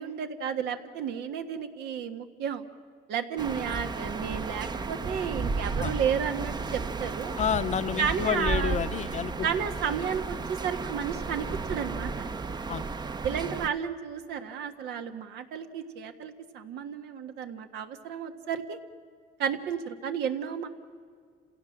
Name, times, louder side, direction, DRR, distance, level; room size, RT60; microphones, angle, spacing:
voice 1, 0.0-2.6 3.1-7.4 8.0-8.8 9.4-10.4 10.6-12.3 13.2-18.8 19.4-20.7, right 7 dB, 80° right, 7 dB, 1.6 m, -32 dB
sound 1, 3.4-13.7, right 4 dB, 25° right, 0.8 m, -33 dB
voice 2, 7.4-9.3 12.7-12.8, left 8 dB, 45° left, 12 dB, 0.8 m, -29 dB
27.5 x 17.0 x 7.4 m, 2.1 s
cardioid pair, 110°, 17 cm